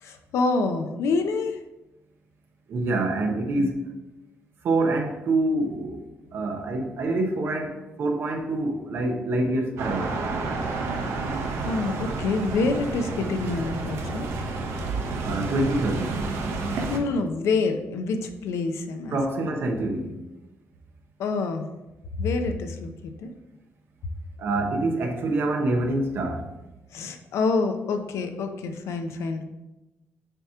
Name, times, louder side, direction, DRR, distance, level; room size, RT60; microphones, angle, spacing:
voice 1, 0.0-1.6 3.6-3.7 11.6-14.3 16.9-19.2 21.2-21.7 22.2-23.3 26.9-29.4, left 3 dB, 90° left, 0.6 m, -27 dB
voice 2, 2.7-3.9 4.6-6.0 6.3-10.2 15.2-16.2 19.1-20.2 24.4-26.5, right 2 dB, 55° right, 0.9 m, -26 dB
sound 1, 9.8-17.0, right 3 dB, 85° right, 0.9 m, -30 dB
6.8 x 2.9 x 4.8 m
cardioid pair, 165°, 5 cm